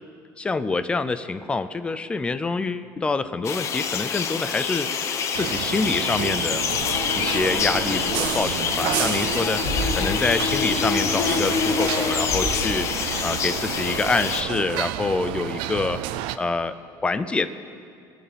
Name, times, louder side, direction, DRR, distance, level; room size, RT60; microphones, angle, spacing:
voice 1, 0.4-4.9 5.4-6.6 7.1-16.0 16.4-16.8 17.0-17.5, left 3 dB, 10° left, 13 dB, 0.4 m, -26 dB
sound 1, 3.4-14.4, left 6 dB, 35° left, 0.8 m, -26 dB
sound 2, 5.3-16.4, right 13 dB, 85° right, 0.5 m, -31 dB
Car, 6.7-14.4, left 2 dB, 75° left, 4.3 m, -35 dB
22.0 x 7.8 x 6.8 m, 2.3 s
cardioid pair, 175°, 8 cm